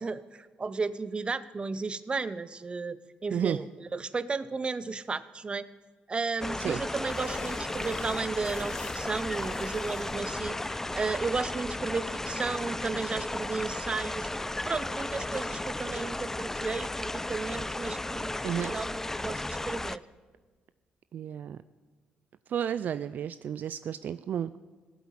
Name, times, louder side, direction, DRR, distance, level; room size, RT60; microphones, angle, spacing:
voice 1, 0.0-5.7 6.1-14.3 14.6-18.4 18.6-20.1, right 4 dB, 30° right, 17 dB, 0.7 m, -34 dB
sound 1, 6.4-11.4, left 4 dB, 75° left, 3.0 m, -47 dB
sound 2, 6.4-20.0, left 2 dB, 10° left, 0.4 m, -34 dB
voice 2, 18.4-18.8 21.1-21.6 22.5-24.6, right 9 dB, 60° right, 15 dB, 0.4 m, -32 dB
16.0 x 8.3 x 8.6 m, 1.4 s
supercardioid pair, 65°, 3 cm